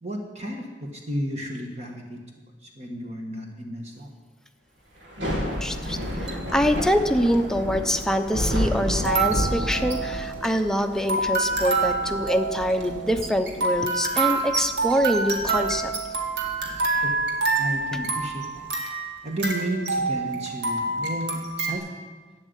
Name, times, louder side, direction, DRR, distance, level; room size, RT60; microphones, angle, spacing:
voice 1, 0.0-2.2 2.6-4.1 17.0-17.1 17.6-18.7 19.2-22.0, right 1 dB, 40° right, 1 dB, 1.5 m, -32 dB
Thunder / Rain, 5.0-18.2, equal, 90° right, 2.5 m, -32 dB
voice 2, 5.6-15.9, equal, 5° left, 6 dB, 0.7 m, -25 dB
sound 1, 6.0-6.5 7.3-7.4 9.0-21.7, right 3 dB, 70° right, 2.1 m, -27 dB
12.0 x 9.3 x 8.2 m, 1.3 s
head